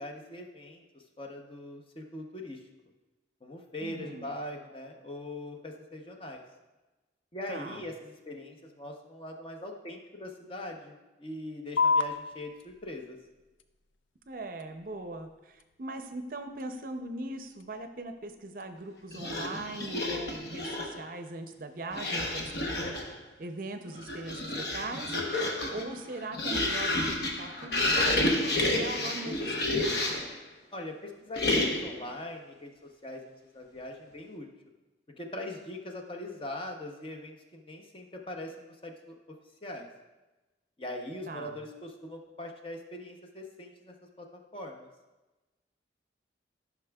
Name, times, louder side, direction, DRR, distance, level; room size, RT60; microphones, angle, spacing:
voice 1, 0.0-2.6 3.4-6.4 7.3-13.2 30.7-34.5 35.2-39.4 39.6-39.9 40.8-44.3 44.5-44.9, left 1 dB, 30° left, 2 dB, 0.7 m, -41 dB
voice 2, 3.8-4.3 7.5-7.8 14.3-23.0 23.4-25.2 25.7-29.9 41.3-41.6, right 2 dB, 50° right, 7 dB, 0.5 m, -40 dB
sound 1, 11.8-18.8, left 4 dB, 90° left, 0.4 m, -35 dB
sound 2, 19.1-21.0 21.9-23.2 23.9-30.4 31.4-32.0, left 1 dB, 60° left, 0.9 m, -30 dB
13.0 x 5.9 x 2.3 m, 1.1 s
head